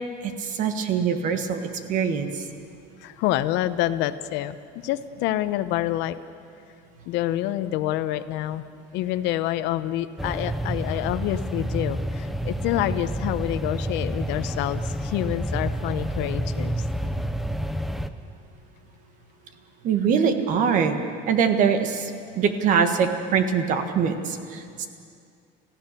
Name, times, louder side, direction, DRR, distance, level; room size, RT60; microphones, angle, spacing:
voice 1, 0.2-2.5 19.8-21.0 21.3-24.9, right 6 dB, 45° right, 7 dB, 1.5 m, -23 dB
voice 2, 3.0-4.6 4.8-6.2 7.1-8.7 8.9-16.8, left 13 dB, 70° left, 12 dB, 0.8 m, -27 dB
sound 1, 10.2-18.1, right 1 dB, ahead, 0.5 m, -29 dB
29.0 x 15.5 x 6.7 m, 2.3 s
cardioid pair, 175°, 19 cm